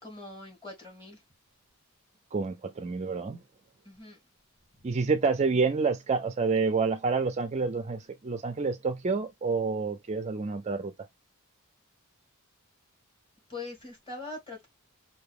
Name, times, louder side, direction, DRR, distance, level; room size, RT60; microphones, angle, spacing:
voice 1, 0.0-1.2 3.8-4.2 4.8-4.9 13.5-14.7, left 3 dB, 25° left, 2.2 m, -42 dB
voice 2, 2.3-3.4 4.8-10.9, right 4 dB, 30° right, 0.4 m, -28 dB
4.6 x 2.6 x 3.4 m
head